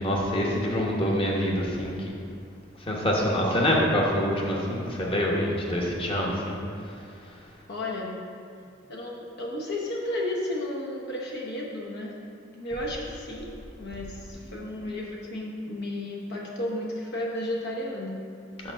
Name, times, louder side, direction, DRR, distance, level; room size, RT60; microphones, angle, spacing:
voice 1, 0.0-2.1 2.9-6.6, equal, 30° left, -2 dB, 1.1 m, -25 dB
voice 2, 0.7-1.3 7.7-8.1 8.9-12.1 12.5-13.5 13.8-18.2, left 1 dB, 55° left, -2 dB, 0.9 m, -33 dB
5.9 x 5.0 x 5.6 m, 2.4 s
head